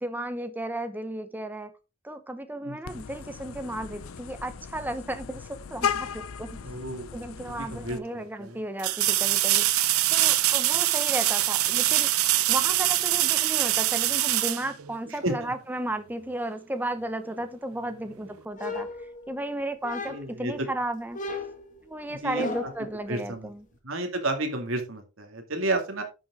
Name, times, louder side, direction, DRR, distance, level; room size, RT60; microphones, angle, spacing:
voice 1, 0.0-1.7 2.0-6.6 7.1-9.7 10.1-12.1 12.5-18.9 19.3-21.2 21.8-23.6, right 1 dB, 10° right, 0.9 m, -34 dB
voice 2, 2.6-3.0 6.6-7.2 7.6-8.6 15.1-15.5 20.1-20.5 22.1-22.7 23.1-23.5 23.8-26.0, right 2 dB, 70° right, 2.3 m, -32 dB
Vehicle horn car horn honking, 2.8-8.0, left 7 dB, 80° left, 0.6 m, -36 dB
sound 1, 7.4-7.5 8.8-15.4 18.3-18.4, right 15 dB, 90° right, 0.7 m, -24 dB
sound 2, 18.6-19.4 19.8-20.5 21.1-22.9, left 3 dB, 35° left, 1.9 m, -35 dB
10.5 x 6.2 x 3.6 m
head